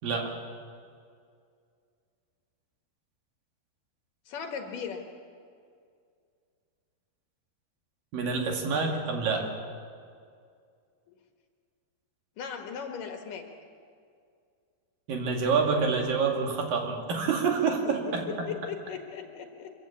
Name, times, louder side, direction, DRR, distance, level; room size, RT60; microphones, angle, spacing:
voice 1, 4.3-5.1 11.1-11.2 12.4-13.4 18.5-19.7, left 7 dB, 65° left, 4 dB, 2.9 m, -37 dB
voice 2, 8.1-9.5 15.1-18.5, right 5 dB, 65° right, 2 dB, 3.8 m, -27 dB
25.0 x 15.5 x 8.5 m, 2.3 s
omnidirectional pair, 4.5 m